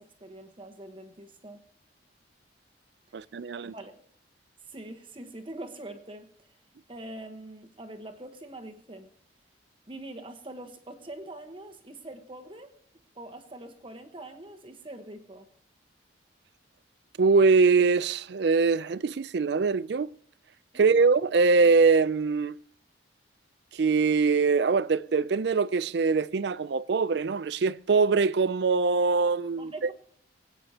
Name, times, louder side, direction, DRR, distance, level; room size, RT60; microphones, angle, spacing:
voice 1, 0.0-1.6 3.6-3.9 4.7-6.3 6.9-9.1 9.9-12.7 13.2-15.5 20.7-21.0 29.6-29.9, right 1 dB, 25° right, 1.2 m, -43 dB
voice 2, 3.1-3.7 17.2-20.1 20.7-22.6 23.7-29.9, right 4 dB, 55° right, 0.4 m, -23 dB
25.0 x 9.1 x 2.9 m
head